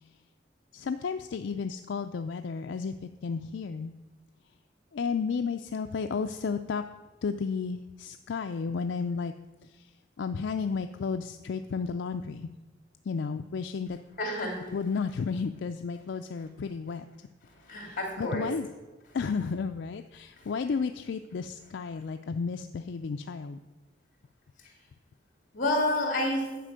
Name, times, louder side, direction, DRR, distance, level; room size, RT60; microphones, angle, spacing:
voice 1, 0.7-3.9 4.9-6.8 7.2-9.3 9.6-12.5 13.0-14.0 14.7-17.1 17.8-18.7 19.1-23.6, left 5 dB, 70° left, 7 dB, 0.4 m, -33 dB
voice 2, 14.2-14.6 17.7-18.5 25.5-26.5, left 1 dB, 45° left, 2 dB, 2.6 m, -29 dB
10.0 x 5.1 x 7.5 m, 1.1 s
head